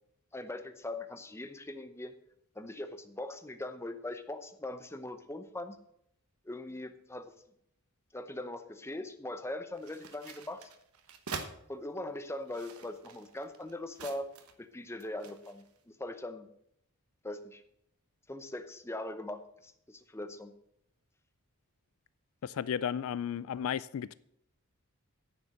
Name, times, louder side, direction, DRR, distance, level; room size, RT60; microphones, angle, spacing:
voice 1, 0.3-2.1 2.6-5.8 6.4-7.3 8.1-10.6 11.7-14.3 14.6-16.5 17.2-17.6 18.3-20.5, left 1 dB, 10° left, 0.7 m, -41 dB
sound 1, 9.7-11.5 12.3-14.7 15.0-15.7, right 5 dB, 80° right, 1.1 m, -46 dB
voice 2, 22.4-24.1, left 8 dB, 70° left, 0.3 m, -34 dB
9.9 x 7.0 x 6.5 m
head